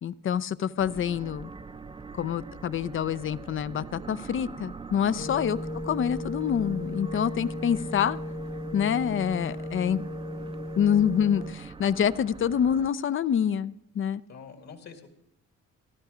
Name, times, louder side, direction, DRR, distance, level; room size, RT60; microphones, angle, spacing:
voice 1, 0.0-1.5 2.1-5.6 5.8-8.2 8.7-10.0 10.8-14.2, left 8 dB, 45° left, 17 dB, 0.5 m, -26 dB
sound 1, 0.8-12.9, right 4 dB, 20° right, 0.5 m, -43 dB
sound 2, 5.2-11.5, left 1 dB, 80° left, 2.4 m, -36 dB
voice 2, 14.3-15.1, left 5 dB, 60° left, 5 dB, 2.1 m, -46 dB
14.5 x 12.5 x 5.0 m, 0.79 s
cardioid pair, 90°, 30 cm